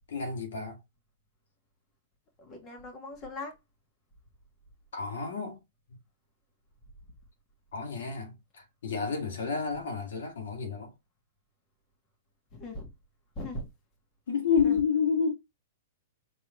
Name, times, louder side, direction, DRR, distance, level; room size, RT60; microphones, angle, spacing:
voice 1, 0.1-0.8 4.9-5.6 5.9-6.0 7.7-10.9 14.3-15.3, left 6 dB, 80° left, 1.7 m, -30 dB
voice 2, 2.4-3.6 12.5-12.9 13.4-13.7 14.6-14.8, left 1 dB, 25° left, 1.4 m, -39 dB
4.6 x 3.1 x 3.0 m
hypercardioid pair, 145°, 0 cm